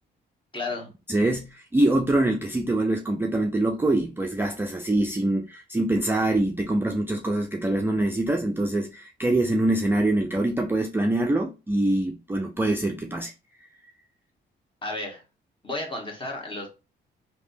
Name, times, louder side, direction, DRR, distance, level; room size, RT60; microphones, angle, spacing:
voice 1, 0.5-0.9 14.8-15.2 15.6-16.7, left 2 dB, 25° left, 1.3 m, -32 dB
voice 2, 1.1-13.3, right 1 dB, 10° right, 0.4 m, -24 dB
3.3 x 2.8 x 2.6 m
cardioid pair, 90°, 20 cm